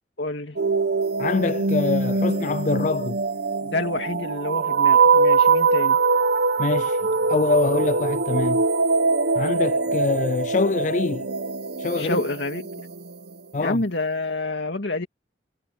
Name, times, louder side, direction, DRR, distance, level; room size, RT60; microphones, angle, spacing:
voice 1, 0.2-0.6 3.6-6.0 12.0-12.6 13.6-15.1, left 2 dB, 90° left, 2.2 m, -28 dB
sound 1, 0.6-13.3, right 4 dB, 75° right, 1.0 m, -22 dB
voice 2, 1.2-3.2 6.6-7.0 7.3-8.6 9.4-11.3 11.8-12.2 13.5-13.8, left 3 dB, 45° left, 0.4 m, -24 dB
head